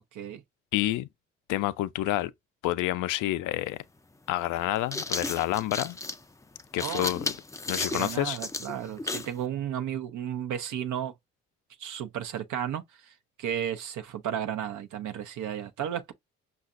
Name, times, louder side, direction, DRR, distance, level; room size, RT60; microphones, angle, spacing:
voice 1, 0.1-0.4 6.8-7.1 7.9-11.1 11.8-16.1, right 9 dB, 65° right, 0.6 m, -33 dB
voice 2, 0.7-1.1 1.5-2.3 2.6-3.8 4.3-6.0 6.7-7.3 7.7-8.4, left 15 dB, 70° left, 0.5 m, -28 dB
sound 1, 3.5-3.6 4.6-9.4, left 3 dB, 10° left, 0.4 m, -34 dB
5.5 x 2.4 x 2.4 m
hypercardioid pair, 50°, 33 cm